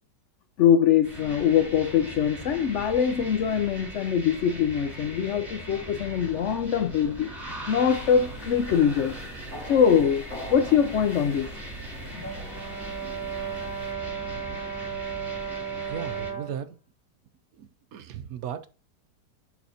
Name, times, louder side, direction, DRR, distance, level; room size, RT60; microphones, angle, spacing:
voice 1, 0.6-7.3 7.7-9.2 9.7-10.2 10.5-11.5, left 8 dB, 75° left, 0.6 m, -23 dB
sound 1, 1.0-16.3, right 1 dB, 10° right, 2.2 m, -40 dB
sound 2, 7.9-13.9, left 1 dB, 45° left, 2.3 m, -43 dB
Brass instrument, 12.2-16.6, right 7 dB, 15° left, 0.8 m, -34 dB
voice 2, 15.8-16.7 17.6-18.7, right 8 dB, 70° right, 0.9 m, -36 dB
10.5 x 4.2 x 2.7 m
omnidirectional pair, 1.8 m